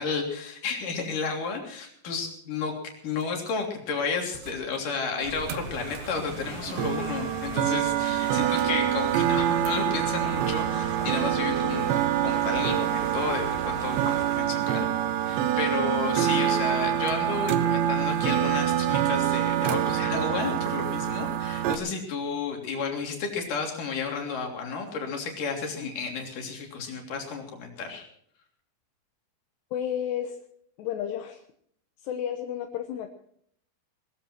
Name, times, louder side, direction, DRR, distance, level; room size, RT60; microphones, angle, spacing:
voice 1, 0.0-2.7 3.0-12.0 12.2-14.9 15.2-28.1, left 5 dB, 50° left, 2 dB, 4.5 m, -32 dB
sound 1, 3.2-3.5 4.3-4.8 5.1-7.3 7.7-8.9 9.3-9.9, right 5 dB, 60° right, 3.9 m, -51 dB
sound 2, 5.2-14.4, right 2 dB, 30° right, 6.1 m, -40 dB
sound 3, 5.5-21.8, right 10 dB, 85° right, 3.4 m, -26 dB
voice 2, 29.7-30.4 30.8-31.4 32.0-33.1, left 9 dB, 80° left, 4 dB, 3.2 m, -32 dB
20.5 x 14.5 x 4.5 m, 0.65 s
omnidirectional pair, 5.0 m